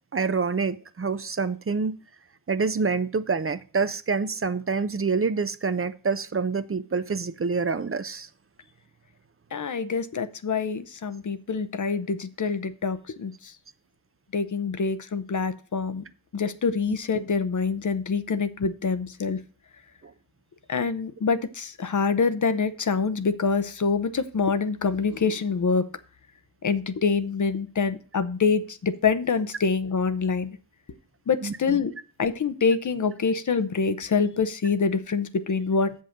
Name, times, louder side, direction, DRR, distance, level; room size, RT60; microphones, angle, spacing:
voice 1, 0.1-1.9 2.5-8.3 20.0-20.1 31.4-31.8, right 4 dB, 40° right, 12 dB, 0.7 m, -27 dB
voice 2, 9.5-13.5 14.3-16.0 16.3-19.4 20.7-25.9 26.6-30.5 31.3-31.9 32.2-36.0, left 5 dB, 55° left, 12 dB, 0.8 m, -25 dB
7.5 x 5.5 x 6.6 m, 0.38 s
cardioid pair, 60°, 36 cm